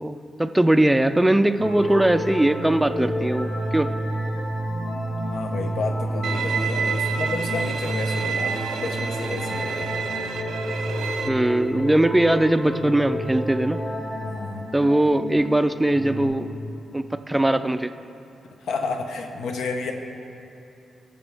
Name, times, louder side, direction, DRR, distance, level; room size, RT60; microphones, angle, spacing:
voice 1, 0.0-3.9 11.3-13.8 14.7-16.5 16.9-17.9, right 1 dB, 5° right, 10 dB, 0.3 m, -20 dB
sound 1, 1.6-16.2, equal, 50° left, 1.5 m, -30 dB
voice 2, 5.3-9.9 14.2-14.7 18.4-19.9, left 3 dB, 90° left, 4 dB, 0.9 m, -31 dB
Bowed string instrument, 6.2-11.3, right 6 dB, 75° right, 0.6 m, -29 dB
19.5 x 6.9 x 3.4 m, 2.7 s
wide cardioid pair, 160°, 0 cm